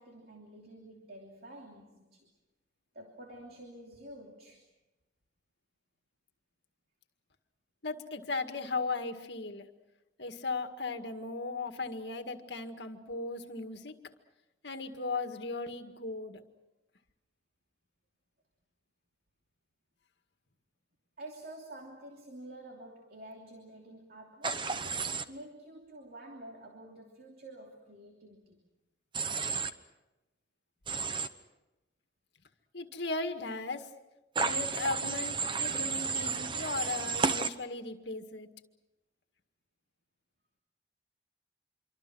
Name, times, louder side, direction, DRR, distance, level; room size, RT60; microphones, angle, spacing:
voice 1, 0.0-2.3 2.9-4.7 21.2-24.8 25.1-28.6, right 1 dB, 55° right, 1 dB, 3.0 m, -49 dB
voice 2, 7.8-9.6 10.2-13.9 14.6-16.4 32.7-33.9 34.4-38.5, left 3 dB, 70° left, 6 dB, 2.0 m, -37 dB
Human voice / Train, 24.4-25.2 29.1-29.7 30.9-31.3 34.4-37.5, right 4 dB, 25° right, 0.9 m, -32 dB
26.5 x 24.5 x 6.2 m, 1.0 s
head